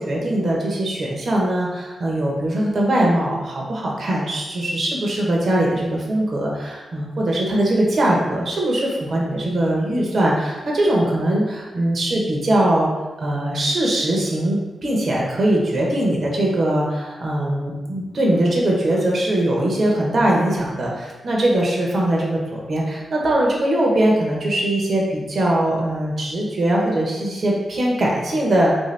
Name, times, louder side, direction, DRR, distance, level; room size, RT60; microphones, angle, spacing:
voice 1, 0.0-12.9 13.2-28.8, right 1 dB, 60° right, -3 dB, 0.8 m, -21 dB
3.2 x 2.7 x 3.3 m, 1.2 s
cardioid pair, 75°, 0 cm